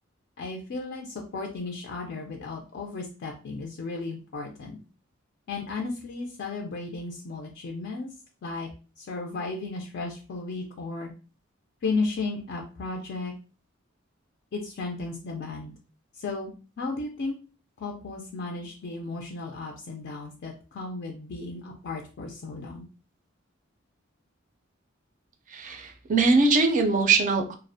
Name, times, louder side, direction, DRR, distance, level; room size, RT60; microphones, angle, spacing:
voice 1, 0.4-4.8 5.5-8.1 8.4-8.7 9.0-11.1 11.8-13.3 14.5-15.7 16.1-16.5 16.8-17.4 17.8-22.9, left 3 dB, 55° left, 1 dB, 0.4 m, -34 dB
voice 2, 25.5-27.6, right 3 dB, 40° right, 6 dB, 0.4 m, -22 dB
2.4 x 2.0 x 2.6 m, 0.36 s
head